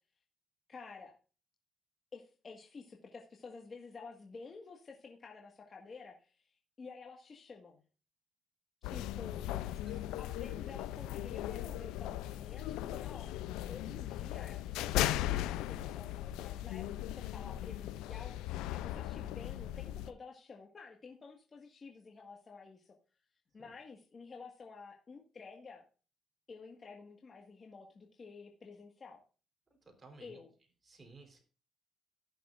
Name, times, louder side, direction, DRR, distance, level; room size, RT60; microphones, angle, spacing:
voice 1, 0.7-1.2 2.1-7.8 8.8-9.7 10.1-16.9 17.1-22.9 23.5-25.8 26.5-29.2 30.2-30.5, left 4 dB, 40° left, 0 dB, 1.7 m, -51 dB
sound 1, 8.8-20.1, left 13 dB, 90° left, 0.5 m, -38 dB
voice 2, 29.9-30.4 30.9-31.4, right 3 dB, 30° right, 3 dB, 3.9 m, -56 dB
17.0 x 6.6 x 2.5 m, 0.37 s
cardioid pair, 75°, 0 cm